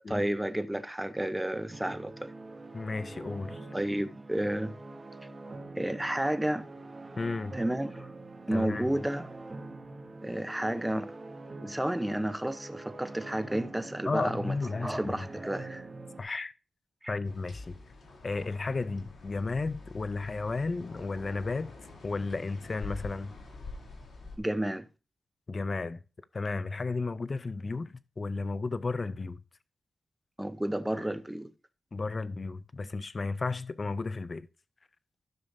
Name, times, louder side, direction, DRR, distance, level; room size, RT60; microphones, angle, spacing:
voice 1, 0.1-2.3 3.7-4.7 5.8-6.6 7.5-8.1 8.5-9.3 10.2-11.1 11.6-14.5 14.8-15.9 17.0-17.1 24.4-24.9 30.4-31.5, right 1 dB, 5° right, 0.7 m, -31 dB
sound 1, 1.7-16.2, right 2 dB, 25° right, 1.2 m, -45 dB
voice 2, 2.7-3.6 7.2-7.6 8.5-8.9 14.1-15.3 16.2-16.5 17.1-17.8 18.2-21.7 22.0-23.3 25.5-26.0 26.3-29.4 31.9-34.5, left 3 dB, 35° left, 0.5 m, -33 dB
sound 2, 17.2-24.4, left 3 dB, 75° left, 2.9 m, -46 dB
13.0 x 6.8 x 2.6 m
wide cardioid pair, 160°, 0 cm